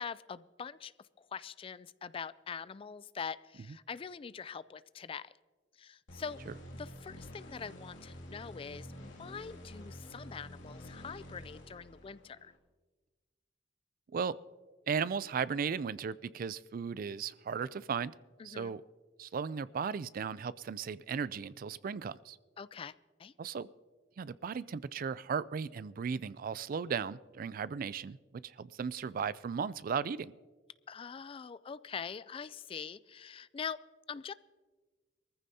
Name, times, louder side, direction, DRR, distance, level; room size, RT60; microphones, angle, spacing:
voice 1, 0.0-5.3 5.8-6.4 6.7-12.5 18.4-18.7 22.6-22.9 23.2-23.3 30.9-33.8 34.1-34.3, left 6 dB, 30° left, 18 dB, 0.3 m, -43 dB
sound 1, 6.1-12.5, left 1 dB, 90° left, 2.5 m, -49 dB
voice 2, 14.9-18.1 18.4-18.8 19.2-22.4 23.4-23.7 24.2-30.3, right 6 dB, 50° right, 18 dB, 0.4 m, -36 dB
22.5 x 14.5 x 2.8 m, 1.4 s
head